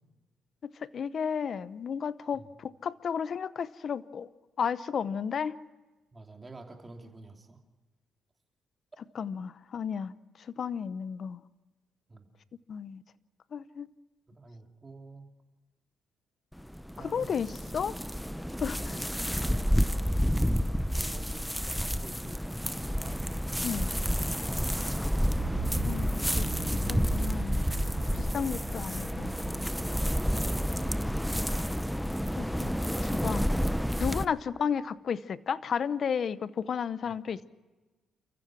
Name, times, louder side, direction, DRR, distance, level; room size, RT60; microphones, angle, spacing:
voice 1, 0.9-4.3 4.6-5.6 9.1-10.1 10.6-11.4 12.7-13.0 13.5-13.9 17.0-17.9 18.6-19.0 23.6-23.9 25.6-26.5 26.9-27.6 28.1-29.3 32.4-33.5 34.0-37.5, left 7 dB, 55° left, 16 dB, 0.8 m, -33 dB
voice 2, 6.1-7.6 12.1-12.3 14.3-15.3 17.0-17.8 18.4-19.1 19.4-19.9 20.9-23.4 29.9-31.6 34.3-34.4 37.0-37.1, right 3 dB, 25° right, 3 dB, 3.0 m, -49 dB
sound 1, 16.5-34.3, equal, ahead, 0.7 m, -30 dB
sound 2, 25.4-31.1, right 9 dB, 55° right, 0.7 m, -41 dB
29.5 x 15.0 x 6.2 m, 1.2 s
cardioid pair, 90°, 0 cm